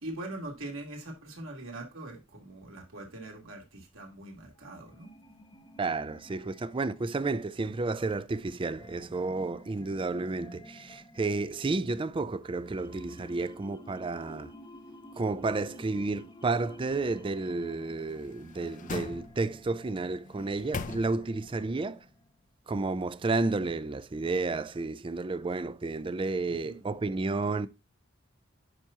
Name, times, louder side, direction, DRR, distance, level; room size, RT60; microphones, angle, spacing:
voice 1, 0.0-5.1 26.5-26.8, right 1 dB, 65° right, 2.9 m, -42 dB
sound 1, 4.5-22.4, left 1 dB, 20° left, 0.9 m, -53 dB
voice 2, 5.8-14.5 15.1-22.1 22.7-27.7, right 3 dB, 25° right, 0.4 m, -31 dB
sound 2, 18.0-19.7 20.2-21.5 21.9-22.0, left 4 dB, 35° left, 0.5 m, -41 dB
10.0 x 6.0 x 2.8 m
head